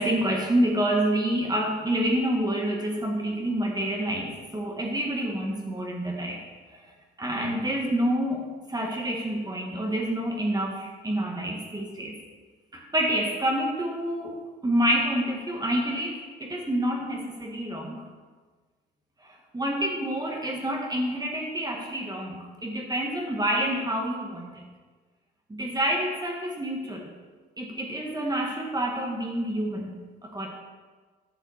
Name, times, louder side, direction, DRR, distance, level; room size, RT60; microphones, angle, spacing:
voice 1, 0.0-6.4 6.7-6.8 7.2-12.1 12.7-18.0 19.2-24.6 25.5-27.1 27.6-29.9 30.2-30.5, right 1 dB, 20° right, 0 dB, 2.1 m, -28 dB
10.5 x 6.1 x 7.4 m, 1.4 s
cardioid pair, 90°, 20 cm